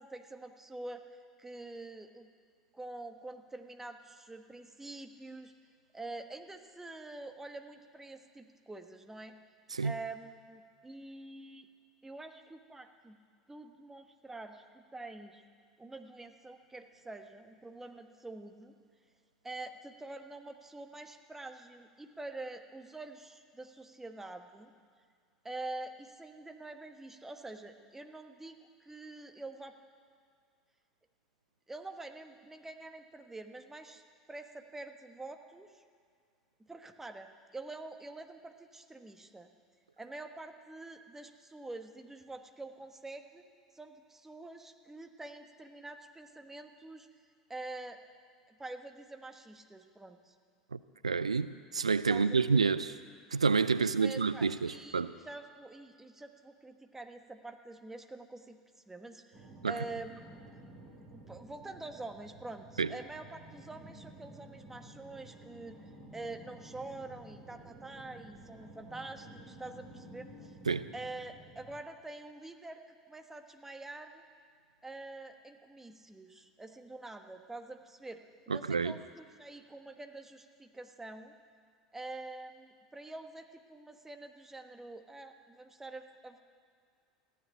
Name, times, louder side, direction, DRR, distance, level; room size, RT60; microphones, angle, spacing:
voice 1, 0.0-2.3 2.7-5.5 5.9-9.3 9.8-11.7 12.0-13.2 13.5-15.4 15.8-18.7 19.4-24.7 25.4-29.7 31.7-34.0 34.3-35.8 36.6-39.5 40.0-43.5 43.7-47.1 47.5-48.0 48.5-50.3 52.1-52.6 53.8-58.6 58.9-60.4 61.1-70.6 70.9-72.8 73.1-74.2 74.8-81.3 81.9-86.4, right 2 dB, 10° right, 6 dB, 1.3 m, -46 dB
voice 2, 51.0-52.9 53.3-55.1 59.6-59.8 62.8-62.9 70.7-70.9 78.5-78.9, right 5 dB, 85° right, 15 dB, 0.3 m, -29 dB
sound 1, 59.3-71.8, right 1 dB, 55° right, 2.9 m, -52 dB
15.0 x 10.0 x 8.4 m, 2.1 s
figure-of-eight pair, 75°, 3 cm